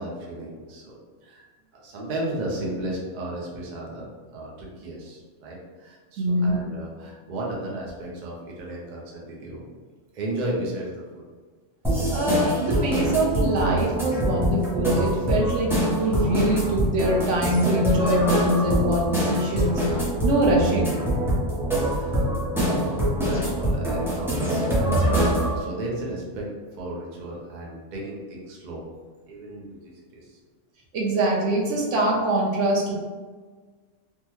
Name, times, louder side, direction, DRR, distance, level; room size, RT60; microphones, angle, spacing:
voice 1, 0.0-1.5 1.7-4.1 4.3-9.7 10.1-11.3 21.9-25.1 25.5-28.8 29.3-30.4, right 1 dB, 45° right, -3 dB, 0.7 m, -34 dB
voice 2, 6.2-6.6 12.1-21.0 30.9-32.9, right 1 dB, 75° right, -2 dB, 1.0 m, -24 dB
sound 1, 11.8-25.6, equal, 5° right, 0.6 m, -24 dB
3.5 x 2.1 x 2.9 m, 1.4 s
omnidirectional pair, 1.3 m